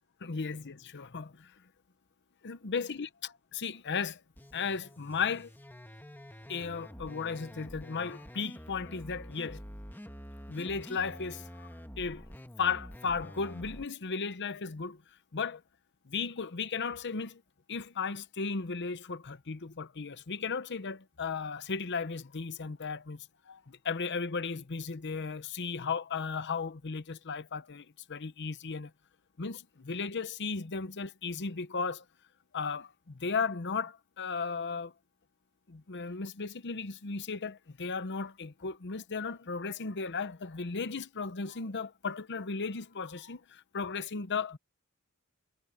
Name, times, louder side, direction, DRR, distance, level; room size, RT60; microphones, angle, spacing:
voice 1, 0.2-1.5 2.4-4.2 4.5-5.5 6.5-9.6 10.5-11.7 12.0-12.3 12.6-15.0 15.3-15.6 16.1-17.4 17.7-28.9 29.4-32.0 32.5-34.9 35.7-44.6, left 5 dB, 50° left, 0.9 m, -35 dB
sound 1, 4.4-13.9, equal, 10° left, 1.6 m, -48 dB
head